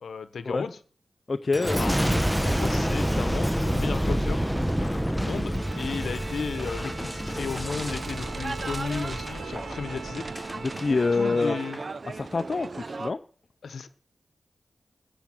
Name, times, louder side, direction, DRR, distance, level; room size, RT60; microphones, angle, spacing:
voice 1, 0.0-0.8 1.8-2.0 2.4-4.5 4.8-10.3 11.1-11.8 13.6-13.9, left 5 dB, 85° left, 12 dB, 0.9 m, -34 dB
voice 2, 1.3-1.8 10.8-11.6 12.1-13.2, left 3 dB, 50° left, 8 dB, 0.6 m, -26 dB
Boom, 1.5-10.9 11.4-11.9, equal, 5° right, 0.8 m, -28 dB
Bowed string instrument, 5.5-11.9, right 5 dB, 80° right, 1.6 m, -42 dB
sound 1, 7.7-13.1, right 3 dB, 55° right, 0.6 m, -37 dB
15.0 x 5.1 x 8.9 m, 0.43 s
cardioid pair, 55°, 0 cm